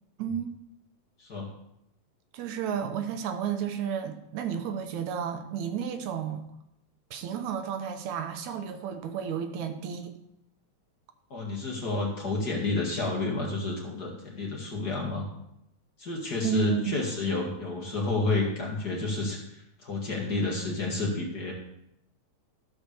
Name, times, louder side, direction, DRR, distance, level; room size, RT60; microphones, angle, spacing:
voice 1, 0.2-0.5 2.3-6.4 7.1-10.2 16.4-17.0 17.3-17.4, right 8 dB, 80° right, 7 dB, 2.3 m, -32 dB
voice 2, 11.3-15.3 16.0-21.5, left 3 dB, 40° left, -2 dB, 2.0 m, -30 dB
13.5 x 4.7 x 6.9 m, 0.81 s
omnidirectional pair, 3.3 m